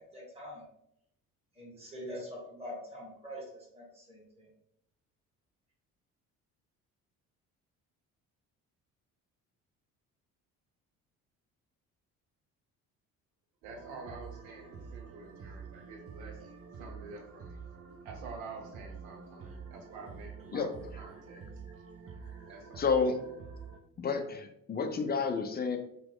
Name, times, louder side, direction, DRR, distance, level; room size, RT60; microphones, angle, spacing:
voice 1, 0.1-0.6 1.6-3.4 3.7-4.2, equal, 15° right, -4 dB, 1.4 m, -43 dB
sound 1, 13.6-23.8, right 5 dB, 35° right, 0.6 m, -48 dB
voice 2, 13.6-16.4 16.8-17.6 18.0-21.4 22.5-22.8, right 4 dB, 75° right, 1 dB, 0.9 m, -48 dB
voice 3, 22.8-23.2 24.0-25.8, left 5 dB, 25° left, 6 dB, 0.5 m, -30 dB
3.0 x 2.2 x 3.6 m, 0.77 s
hypercardioid pair, 55°, 41 cm